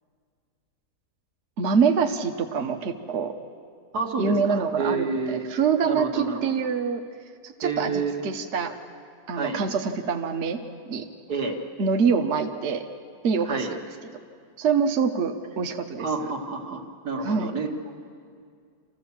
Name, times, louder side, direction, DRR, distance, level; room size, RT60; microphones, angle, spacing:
voice 1, 1.6-3.3 4.2-7.0 7.4-8.7 9.3-10.6 10.9-11.0 11.8-12.8 13.2-13.8 14.6-16.3 17.2-17.5, right 5 dB, 55° right, 5 dB, 1.1 m, -25 dB
voice 2, 3.9-5.4 5.8-6.4 7.6-8.2 9.3-9.6 11.3-11.6 13.5-13.7 16.0-17.7, right 4 dB, 85° right, 1 dB, 2.2 m, -29 dB
26.5 x 14.5 x 7.2 m, 2.2 s
omnidirectional pair, 1.6 m